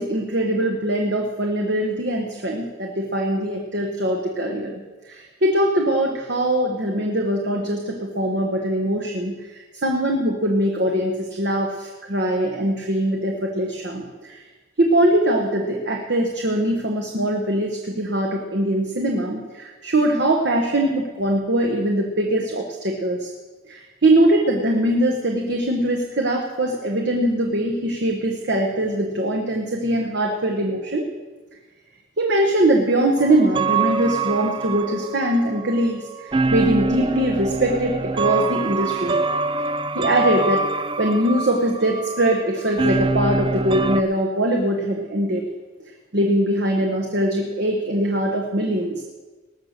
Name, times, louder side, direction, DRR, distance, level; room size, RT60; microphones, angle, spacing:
voice 1, 0.0-4.7 5.1-14.4 14.8-23.3 23.7-31.1 32.2-39.1 39.9-40.6 41.0-45.4 46.1-49.0, right 1 dB, 55° right, 1 dB, 1.2 m, -22 dB
sound 1, 33.2-44.0, right 3 dB, 25° right, 0.4 m, -25 dB
19.0 x 6.6 x 6.7 m, 1.3 s
head